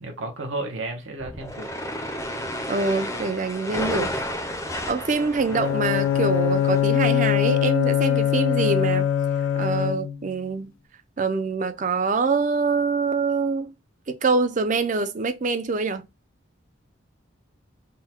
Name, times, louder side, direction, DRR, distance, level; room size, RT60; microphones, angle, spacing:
voice 1, 0.0-1.7, right 2 dB, 75° right, 0.9 m, -33 dB
sound 1, 1.2-6.8, left 1 dB, 15° left, 0.5 m, -32 dB
voice 2, 2.7-4.1 4.9-9.1 9.6-10.7 11.2-13.7 14.1-16.0, right 4 dB, 40° right, 0.4 m, -25 dB
Bowed string instrument, 5.5-10.3, left 10 dB, 75° left, 0.4 m, -22 dB
3.7 x 2.2 x 4.2 m
head